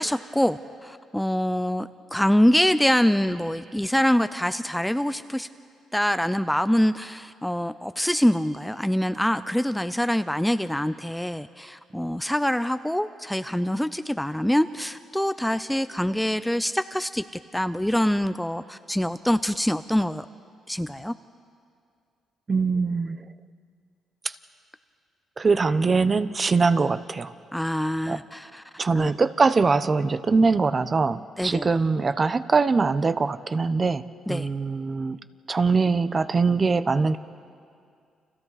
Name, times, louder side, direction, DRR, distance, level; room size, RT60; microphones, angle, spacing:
voice 1, 0.0-5.5 5.9-17.2 17.5-20.3 20.7-21.1 27.5-28.6 28.9-29.1 31.4-31.7 34.3-34.5, equal, 5° left, 12 dB, 0.5 m, -25 dB
voice 2, 22.5-23.2 24.2-24.4 25.4-27.3 28.1-28.2 28.8-35.2 35.5-37.2, right 4 dB, 35° right, 13 dB, 0.8 m, -22 dB
30.0 x 26.5 x 4.1 m, 2.3 s
cardioid pair, 90°, 0 cm